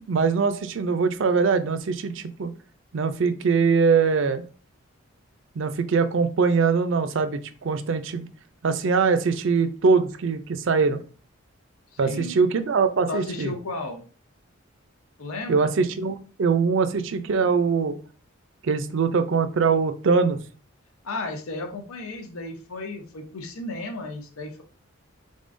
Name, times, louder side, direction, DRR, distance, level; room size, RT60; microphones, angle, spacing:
voice 1, 0.1-2.5 2.9-4.4 5.6-8.3 8.6-11.0 12.0-13.5 15.5-18.0 18.6-20.4, right 5 dB, 60° right, 10 dB, 0.4 m, -22 dB
voice 2, 11.9-12.3 13.1-14.0 15.2-15.7 21.0-24.6, left 2 dB, 90° left, 4 dB, 0.7 m, -34 dB
3.7 x 3.6 x 2.5 m, 0.38 s
head